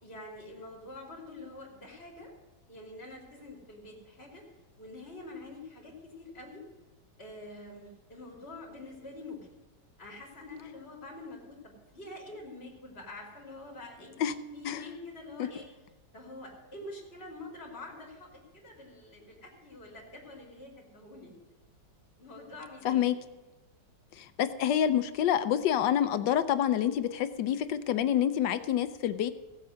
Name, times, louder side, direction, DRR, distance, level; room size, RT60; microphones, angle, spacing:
voice 1, 0.0-2.3 2.7-4.4 4.8-6.6 7.2-9.5 10.0-14.1 14.5-15.7 16.1-21.3 22.2-23.1, left 2 dB, 35° left, -3 dB, 3.1 m, -46 dB
voice 2, 24.1-29.3, left 10 dB, 80° left, 11 dB, 1.4 m, -27 dB
16.5 x 7.8 x 6.3 m, 1.2 s
omnidirectional pair, 1.9 m